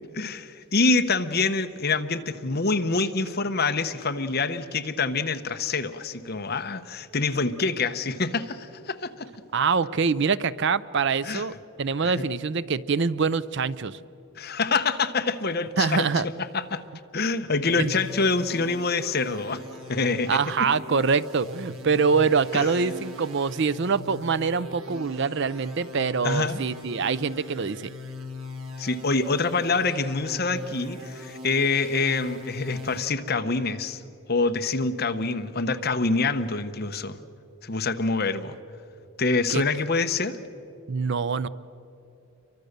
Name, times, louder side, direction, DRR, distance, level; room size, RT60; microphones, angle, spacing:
voice 1, 0.1-9.3 11.2-11.4 12.0-12.2 14.4-16.8 17.1-19.6 19.9-20.4 22.5-22.7 26.2-26.6 28.8-34.0 34.3-37.2 37.6-38.6 39.2-40.4, left 3 dB, 45° left, 8 dB, 1.0 m, -26 dB
voice 2, 9.5-14.0 15.8-16.3 17.8-17.9 20.3-27.9 39.5-39.6 40.9-41.5, right 5 dB, 50° right, 16 dB, 0.5 m, -25 dB
sound 1, 17.6-33.0, left 2 dB, 75° right, 2.8 m, -41 dB
29.0 x 24.0 x 6.7 m, 2.8 s
head